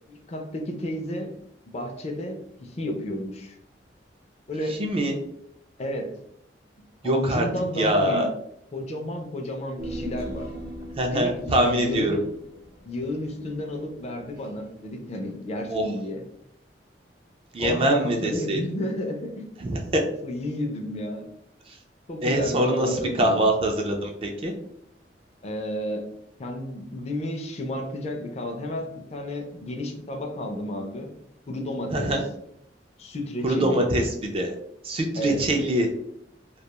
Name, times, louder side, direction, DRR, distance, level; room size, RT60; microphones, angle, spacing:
voice 1, 0.1-1.3 1.7-3.6 4.5-4.8 5.8-6.2 7.0-8.3 8.7-10.5 11.1-12.2 12.8-16.2 17.6-19.7 20.2-21.3 22.1-23.5 25.4-26.1 26.4-31.1 31.5-32.1 33.0-33.9 35.2-35.4, left 1 dB, 35° left, 3 dB, 0.4 m, -32 dB
voice 2, 4.7-5.2 7.0-7.5 7.8-8.3 11.0-12.2 15.7-15.8 17.5-18.6 19.6-20.0 22.2-24.5 31.9-32.2 33.4-34.5 34.8-35.9, right 1 dB, 30° right, 2 dB, 0.4 m, -23 dB
Human voice, 9.8-14.4 14.7-14.8, right 1 dB, 55° right, 0.8 m, -38 dB
2.3 x 2.2 x 2.8 m, 0.74 s
head